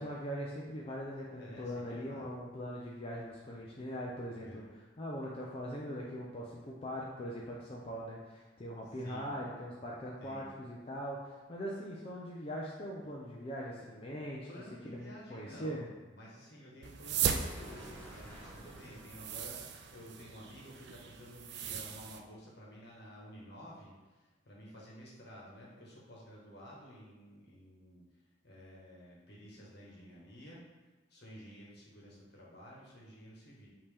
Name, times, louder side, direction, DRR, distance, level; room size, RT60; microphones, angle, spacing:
voice 1, 0.0-14.5 14.8-15.9, equal, 30° left, -4 dB, 0.5 m, -41 dB
voice 2, 1.3-2.4 4.3-4.7 9.0-9.3 10.2-10.5 14.5-28.0 28.4-30.6 31.1-33.7, equal, 65° left, -4 dB, 1.2 m, -52 dB
sound 1, 16.8-22.2, right 7 dB, 65° right, 0.4 m, -38 dB
sound 2, 17.2-22.0, right 1 dB, 15° left, 1.2 m, -54 dB
5.3 x 2.9 x 3.4 m, 1.2 s
head